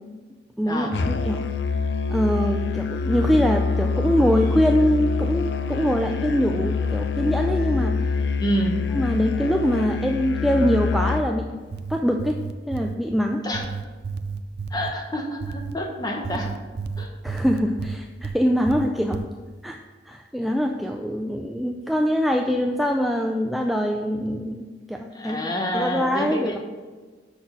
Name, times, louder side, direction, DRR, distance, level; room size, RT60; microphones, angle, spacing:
voice 1, 0.6-1.5 2.1-8.0 8.9-11.5 11.9-12.4 12.7-13.5 17.2-19.2 19.6-19.8 20.1-24.6 24.9-25.5 25.7-26.6, equal, ahead, 2 dB, 0.3 m, -23 dB
Musical instrument, 0.9-11.3, left 4 dB, 75° left, 0.5 m, -25 dB
voice 2, 8.4-8.7 13.4-13.7 14.7-16.5 17.0-17.1 25.1-26.6, equal, 25° left, 1 dB, 1.1 m, -27 dB
sound 1, 11.6-13.0 13.5-14.9 15.4-15.8 16.2-18.4 18.7-19.3, right 5 dB, 65° right, 0.4 m, -32 dB
6.3 x 6.0 x 6.0 m, 1.4 s
head